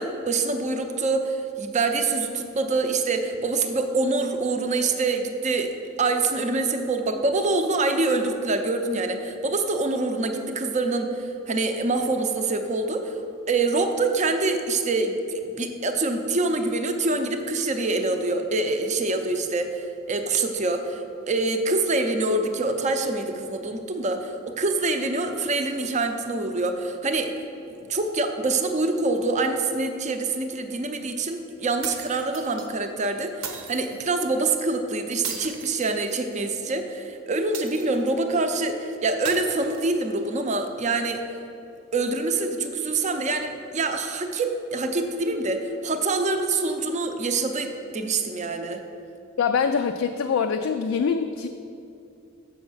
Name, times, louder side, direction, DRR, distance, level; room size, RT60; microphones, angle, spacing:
voice 1, 0.0-5.7 6.0-13.1 13.5-21.0 21.3-27.3 27.9-41.2 41.9-48.8, right 3 dB, 35° right, 6 dB, 0.6 m, -25 dB
sound 1, 31.8-32.7 33.4-34.0 35.2-36.5 37.5-38.2 39.2-40.2, right 6 dB, 80° right, 0.9 m, -37 dB
voice 2, 49.4-51.5, left 6 dB, 75° left, 6 dB, 0.3 m, -24 dB
7.1 x 6.0 x 5.5 m, 2.6 s
head